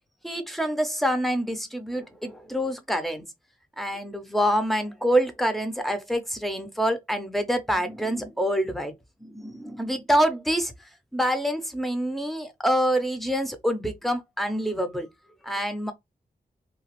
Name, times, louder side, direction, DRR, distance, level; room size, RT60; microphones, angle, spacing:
voice 1, 0.2-3.3 3.8-8.9 9.2-10.7 11.1-15.1 15.4-15.9, equal, ahead, 0.6 m, -26 dB
2.8 x 2.3 x 2.9 m
wide cardioid pair, 125°, 16 cm